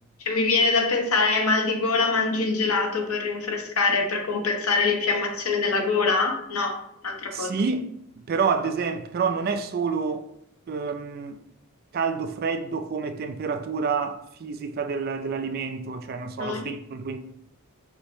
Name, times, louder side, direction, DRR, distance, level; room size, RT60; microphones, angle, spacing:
voice 1, 0.2-6.7 7.0-7.5 16.4-16.7, left 4 dB, 80° left, 0.9 m, -24 dB
voice 2, 7.3-7.9 8.3-10.3 10.7-11.4 11.9-17.2, right 5 dB, 45° right, 0.3 m, -28 dB
5.3 x 2.1 x 4.5 m
head